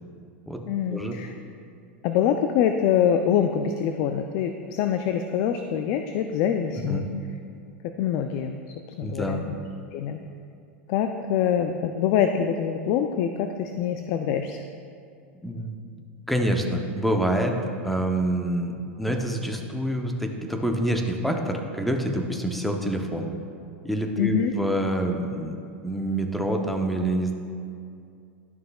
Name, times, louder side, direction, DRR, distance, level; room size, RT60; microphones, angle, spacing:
voice 1, 0.7-1.3 2.0-7.0 8.0-8.6 9.0-9.5 9.9-10.2 10.9-14.6 24.2-24.5, left 8 dB, 50° left, 7 dB, 0.4 m, -25 dB
voice 2, 9.0-9.4 15.4-15.7 16.3-17.6 17.8-23.3 23.8-25.6 25.8-27.3, right 1 dB, ahead, 3 dB, 0.7 m, -26 dB
11.5 x 6.4 x 2.3 m, 2.4 s
hypercardioid pair, 120°, 7 cm